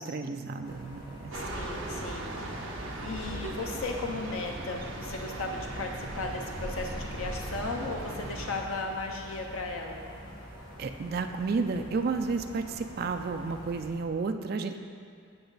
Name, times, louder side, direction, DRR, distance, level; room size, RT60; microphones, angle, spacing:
voice 1, 0.0-1.3 10.8-14.8, right 4 dB, 45° right, 6 dB, 0.3 m, -32 dB
sound 1, 0.6-13.9, equal, 25° left, 1.4 m, -46 dB
voice 2, 1.3-10.0, left 3 dB, 80° left, 2 dB, 0.6 m, -36 dB
sound 2, 1.3-8.6, right 1 dB, 65° right, 0.8 m, -38 dB
8.5 x 5.8 x 4.0 m, 2.3 s
head